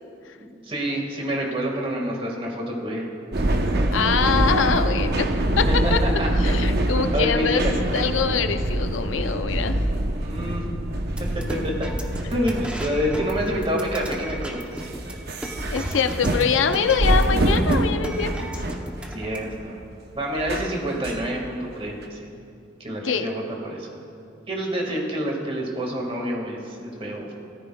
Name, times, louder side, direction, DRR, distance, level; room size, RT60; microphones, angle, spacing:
voice 1, 0.4-3.1 3.4-3.5 3.7-3.8 5.7-5.8 6.2-6.3 6.8-8.0 10.2-10.6 11.5-11.9 12.3-14.6 19.1-19.7 20.1-22.3 22.8-24.0 24.5-27.3, equal, 30° right, 0 dB, 1.8 m, -28 dB
sound 1, 3.3-19.0 19.5-19.7 20.4-21.2 22.0-22.1, right 1 dB, 55° right, 0.8 m, -25 dB
voice 2, 3.9-5.3 5.6-6.0 6.4-7.6 7.9-9.8 12.2-12.3 15.7-18.5 23.0-23.3, left 6 dB, 85° left, 8 dB, 0.6 m, -24 dB
sound 2, 11.1-19.5, equal, 5° right, 0.8 m, -34 dB
18.0 x 14.0 x 2.3 m, 2.5 s
head